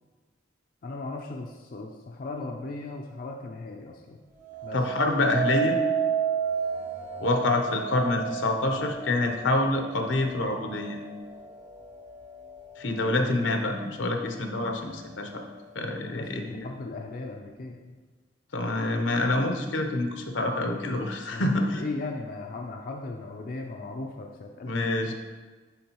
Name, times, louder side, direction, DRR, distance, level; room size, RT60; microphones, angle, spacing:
voice 1, 0.8-4.2 4.6-4.8 16.1-18.0 21.3-25.1, left 3 dB, 50° left, 2 dB, 0.4 m, -37 dB
sound 1, 4.4-13.6 14.1-14.6, right 7 dB, 40° right, 1.0 m, -32 dB
voice 2, 4.7-5.8 7.2-11.0 12.8-15.4 15.7-16.7 18.5-21.8 24.7-25.1, left 2 dB, 85° left, 4 dB, 0.8 m, -27 dB
9.8 x 3.7 x 2.9 m, 1.4 s
head